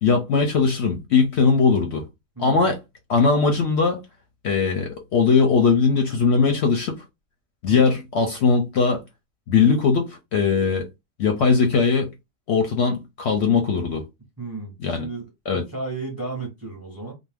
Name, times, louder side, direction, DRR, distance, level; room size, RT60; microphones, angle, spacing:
voice 1, 0.0-2.0 2.4-2.8 3.1-4.0 4.4-7.0 7.6-9.0 9.5-10.9 11.2-12.1 12.5-14.0 14.8-15.1 15.5-15.6, left 5 dB, 60° left, 0.7 m, -20 dB
voice 2, 2.4-2.7 7.7-8.0 14.4-17.1, right 3 dB, 20° right, 0.6 m, -34 dB
2.5 x 2.1 x 3.3 m
omnidirectional pair, 1.5 m